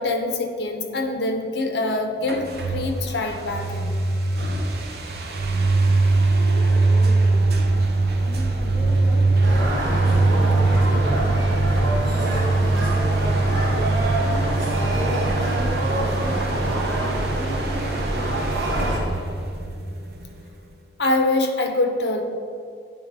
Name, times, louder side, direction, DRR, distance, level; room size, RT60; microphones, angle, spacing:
voice 1, 0.0-3.9 21.0-22.2, left 2 dB, 70° left, 4 dB, 0.8 m, -24 dB
sound 1, 2.2-20.7, right 2 dB, 60° right, 0.6 m, -22 dB
voice 2, 6.4-7.8 8.1-10.5 10.8-11.3 11.7-14.6 14.9-19.1, equal, 15° right, -5 dB, 1.3 m, -36 dB
sound 2, 9.4-19.0, right 1 dB, 80° right, 1.4 m, -26 dB
8.9 x 3.7 x 5.2 m, 2.4 s
head